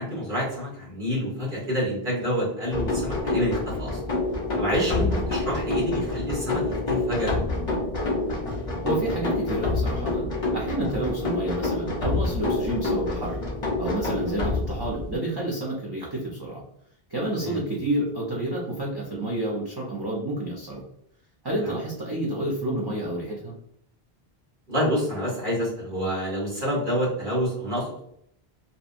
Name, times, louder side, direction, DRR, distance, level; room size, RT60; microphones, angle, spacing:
voice 1, 0.0-4.0 4.6-7.3 17.4-17.6 21.6-21.7 24.7-28.0, equal, 60° right, -6 dB, 1.4 m, -28 dB
sound 1, 2.7-15.2, left 2 dB, 40° left, 0.6 m, -27 dB
voice 2, 8.8-13.4 13.8-16.6 17.1-20.8 21.4-23.5, right 1 dB, 35° right, -5 dB, 0.4 m, -29 dB
2.7 x 2.1 x 2.4 m, 0.71 s
omnidirectional pair, 1.1 m